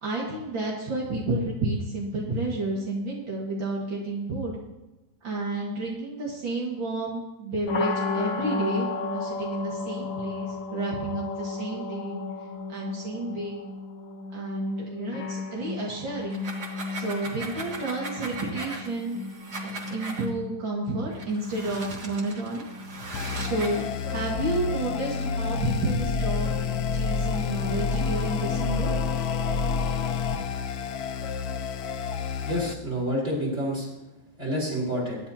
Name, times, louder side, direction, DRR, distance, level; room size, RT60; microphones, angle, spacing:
voice 1, 0.0-4.6 5.2-12.2 12.7-13.6 14.3-16.4 16.9-19.2 19.6-22.7 23.4-26.5 26.9-28.9, right 2 dB, 75° right, -3 dB, 2.8 m, -31 dB
sound 1, 7.7-27.5, left 4 dB, 85° left, 1.9 m, -36 dB
sound 2, 16.2-20.3 21.1-23.9, right 3 dB, 55° right, 2.1 m, -39 dB
sound 3, 23.1-32.7, left 5 dB, 65° left, 1.1 m, -28 dB
voice 2, 32.5-33.9 34.4-35.2, equal, 35° right, -4 dB, 5.3 m, -28 dB
22.5 x 10.5 x 2.9 m, 1.0 s
omnidirectional pair, 2.1 m